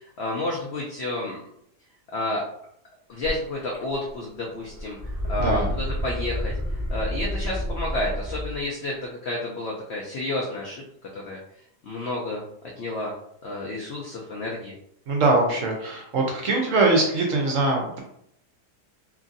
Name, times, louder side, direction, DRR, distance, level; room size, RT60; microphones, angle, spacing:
voice 1, 0.2-1.4 2.1-2.4 3.1-5.0 5.3-6.5 6.9-8.9 9.2-10.8 11.3-11.4 11.8-12.4 12.8-13.1 13.4-14.7, left 2 dB, 75° left, -2 dB, 0.6 m, -30 dB
sound 1, 3.2-3.3 3.7-4.3 4.6-8.6, equal, 15° right, 1.1 m, -29 dB
voice 2, 5.4-5.7 15.1-18.0, right 2 dB, 65° right, 0 dB, 0.9 m, -22 dB
3.0 x 2.6 x 2.5 m, 0.71 s
omnidirectional pair, 1.7 m